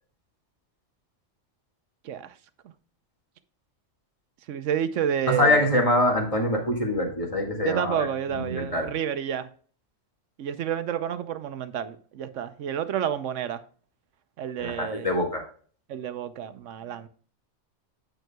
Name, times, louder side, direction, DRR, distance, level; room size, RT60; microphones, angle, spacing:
voice 1, 2.0-2.3 4.5-5.7 7.6-9.5 10.4-13.6 14.4-15.1 15.9-17.1, right 9 dB, 85° right, 1.1 m, -30 dB
voice 2, 5.3-8.9 14.6-15.4, left 1 dB, 30° left, 2.0 m, -24 dB
9.1 x 7.7 x 2.3 m
omnidirectional pair, 1.2 m